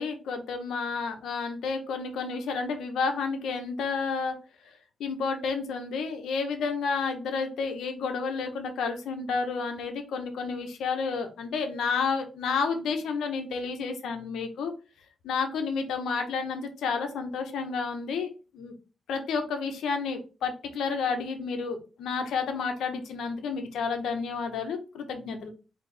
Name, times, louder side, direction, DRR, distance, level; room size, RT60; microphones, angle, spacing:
voice 1, 0.0-4.4 4.6-4.7 5.0-14.7 15.2-18.7 19.1-25.5, left 5 dB, 80° left, 5 dB, 1.0 m, -31 dB
4.3 x 3.0 x 3.4 m, 0.33 s
cardioid pair, 100°, 0 cm